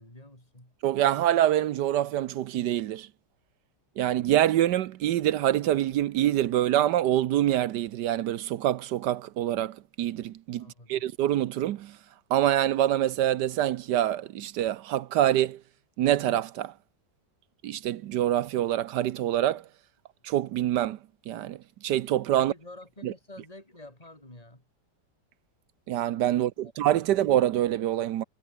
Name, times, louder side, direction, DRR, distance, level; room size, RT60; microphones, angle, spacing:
voice 1, 0.0-0.7 10.6-11.1 22.4-24.6 26.3-26.7 27.0-27.2, left 1 dB, 20° left, 6.3 m, -49 dB
voice 2, 0.8-3.1 4.0-12.0 12.3-15.6 16.0-16.7 17.6-19.6 20.2-21.0 21.3-21.6 21.8-22.5 23.0-23.1 25.9-28.2, right 12 dB, 70° right, 1.2 m, -25 dB
omnidirectional pair, 2.0 m